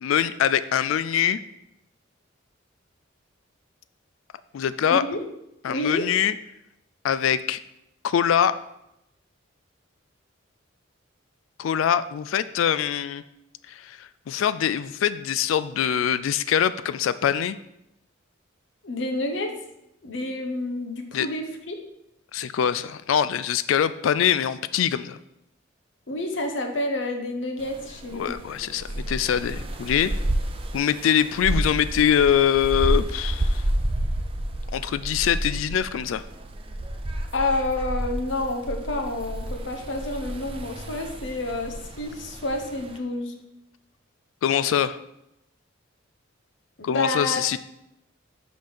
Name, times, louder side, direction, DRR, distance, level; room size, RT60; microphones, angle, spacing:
voice 1, 0.0-1.4 4.5-5.0 5.6-6.3 7.0-7.6 8.0-8.6 11.6-13.2 13.7-17.6 21.1-21.3 22.3-25.2 28.1-30.1 30.7-33.6 34.7-36.2 44.4-45.0 46.8-47.6, left 9 dB, 80° left, 14 dB, 0.3 m, -23 dB
voice 2, 5.7-6.1 18.8-19.5 20.0-21.8 26.1-28.3 37.3-43.3 46.8-47.4, left 2 dB, 65° left, 3 dB, 0.9 m, -29 dB
sound 1, 27.6-43.0, right 1 dB, 30° right, 0.6 m, -30 dB
6.0 x 5.4 x 5.1 m, 0.83 s
head